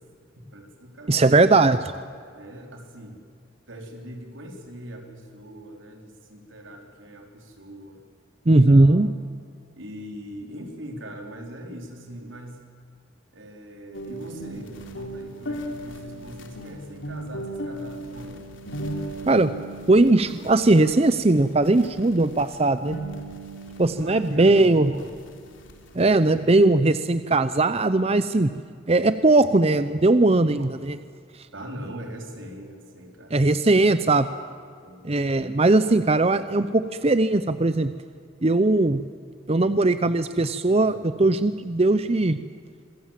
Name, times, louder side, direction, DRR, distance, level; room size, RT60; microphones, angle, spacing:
voice 1, 0.5-1.5 2.3-3.2 3.7-8.0 8.4-9.1 9.4-9.5 9.7-12.6 13.3-18.4 23.9-25.1 30.6-30.7 31.5-33.4 33.6-33.8 34.8-35.1, equal, 85° right, 2 dB, 4.6 m, -41 dB
voice 2, 1.1-1.8 8.5-9.1 19.3-19.5 19.9-23.0 23.8-24.9 25.9-28.5 28.9-31.0 33.3-34.3 35.0-37.9 38.4-39.0 39.5-42.4, right 2 dB, 30° right, 12 dB, 0.7 m, -19 dB
sound 1, 13.9-26.5, right 1 dB, 85° left, 3.4 m, -37 dB
26.5 x 22.5 x 7.6 m, 2.2 s
head